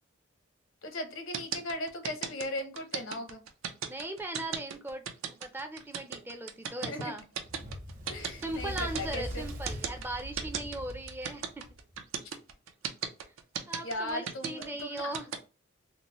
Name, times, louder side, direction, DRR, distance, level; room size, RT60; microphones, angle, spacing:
voice 1, 0.8-3.4 6.8-7.1 8.1-9.4 13.8-15.1, left 1 dB, 80° left, 5 dB, 0.8 m, -37 dB
sound 1, 1.3-15.4, right 7 dB, 80° right, 0.5 m, -36 dB
voice 2, 3.9-7.2 8.3-11.4 13.7-15.3, right 1 dB, 10° right, 6 dB, 0.4 m, -38 dB
Fire, 7.4-12.0, equal, 40° right, 0.8 m, -41 dB
3.8 x 2.0 x 2.9 m, 0.32 s
head